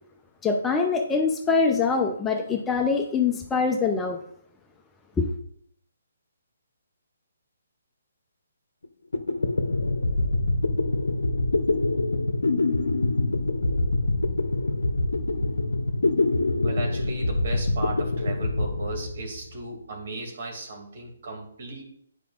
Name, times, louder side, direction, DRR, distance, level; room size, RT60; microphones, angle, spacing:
voice 1, 0.4-4.2 5.2-5.3, left 4 dB, 10° left, 3 dB, 0.6 m, -24 dB
sound 1, 8.8-8.9 9.1-19.6, left 2 dB, 85° left, 0.7 m, -25 dB
voice 2, 16.6-21.8, right 2 dB, 55° right, 1 dB, 2.3 m, -35 dB
9.8 x 4.7 x 2.4 m, 0.65 s
hypercardioid pair, 145°, 0 cm